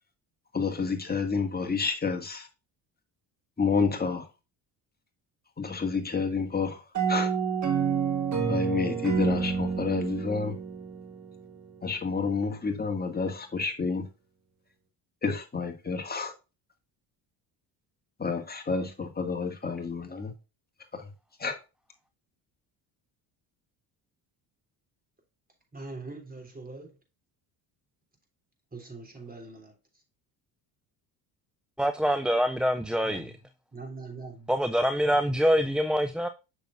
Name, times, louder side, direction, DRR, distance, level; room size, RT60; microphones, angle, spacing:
voice 1, 0.5-2.5 3.6-4.3 5.6-6.8 7.1-7.3 8.5-10.5 11.8-14.0 15.2-16.3 18.2-20.3 20.9-21.1 21.4-21.6, left 4 dB, 20° left, 2.0 m, -29 dB
sound 1, 6.9-11.6, right 6 dB, 40° right, 2.0 m, -29 dB
voice 2, 25.7-27.0 28.7-29.6 33.0-33.3 33.7-34.5 35.1-35.6, right 3 dB, 20° right, 3.2 m, -43 dB
voice 3, 31.8-33.3 34.5-36.3, equal, ahead, 0.4 m, -25 dB
6.8 x 6.3 x 2.6 m
supercardioid pair, 80°, 45 cm